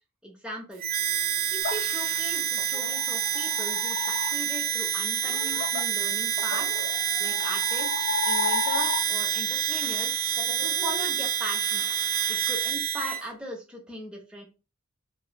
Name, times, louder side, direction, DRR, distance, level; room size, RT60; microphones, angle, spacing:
voice 1, 0.2-1.0 1.5-6.7 7.2-8.0 8.2-11.8 12.3-14.4, right 1 dB, 5° right, -2 dB, 0.7 m, -39 dB
Harmonica, 0.8-13.2, right 9 dB, 45° right, 0.3 m, -28 dB
sound 1, 1.6-9.4 9.7-12.7, left 5 dB, 50° left, 0.5 m, -34 dB
3.0 x 2.0 x 2.2 m, 0.31 s
head